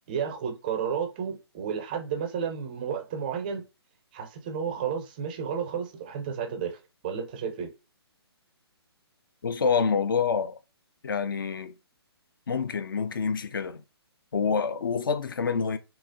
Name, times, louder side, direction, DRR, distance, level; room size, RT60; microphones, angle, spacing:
voice 1, 0.1-3.6 4.1-7.7, right 7 dB, 20° right, 0.4 m, -32 dB
voice 2, 9.4-10.6 11.0-11.7 12.5-13.8 14.3-15.8, left 5 dB, 55° left, 0.4 m, -27 dB
3.9 x 2.9 x 2.5 m
figure-of-eight pair, 130°, 14 cm